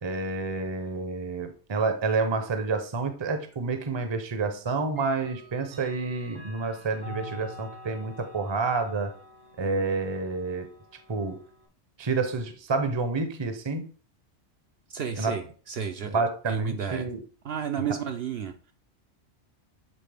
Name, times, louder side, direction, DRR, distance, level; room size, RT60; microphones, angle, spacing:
voice 1, 0.0-9.1 9.6-10.7 11.1-11.4 12.0-13.9 15.2-15.4 16.0-17.2 17.9-18.0, right 4 dB, 30° right, 7 dB, 0.6 m, -29 dB
Clock, 3.5-3.6 4.9-11.7, equal, 80° right, 1.5 m, -46 dB
voice 2, 14.9-17.1 17.4-18.7, right 7 dB, 65° right, 5 dB, 0.8 m, -32 dB
7.6 x 4.0 x 3.4 m, 0.40 s
omnidirectional pair, 1.2 m